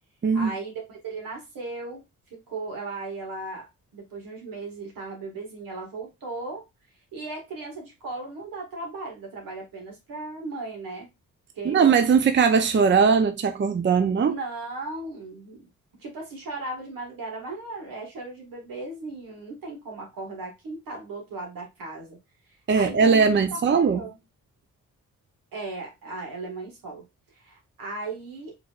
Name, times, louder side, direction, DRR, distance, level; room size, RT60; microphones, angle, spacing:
voice 1, 0.3-2.0 2.3-3.7 3.9-6.6 7.1-11.1 11.5-11.8 14.3-15.7 16.0-22.2 22.7-24.2 25.5-28.6, right 2 dB, 80° right, 1.9 m, -37 dB
voice 2, 11.6-14.4 22.7-24.0, right 5 dB, 35° right, 0.6 m, -20 dB
4.9 x 3.3 x 2.4 m
cardioid pair, 65°, 33 cm